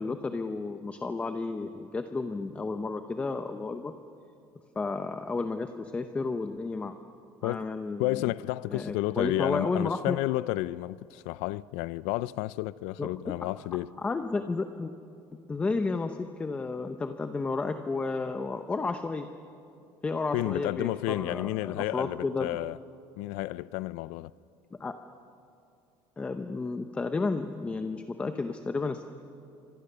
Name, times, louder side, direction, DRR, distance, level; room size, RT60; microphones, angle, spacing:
voice 1, 0.0-3.9 4.8-6.9 7.4-8.2 8.7-10.2 13.0-13.3 14.0-14.9 15.5-19.3 20.0-22.6 24.8-25.0 26.2-29.0, left 3 dB, 10° left, 0.7 m, -32 dB
voice 2, 8.0-13.9 20.3-22.8 23.2-24.3, left 18 dB, 85° left, 0.5 m, -31 dB
29.5 x 25.0 x 6.8 m
cardioid pair, 175°, 11 cm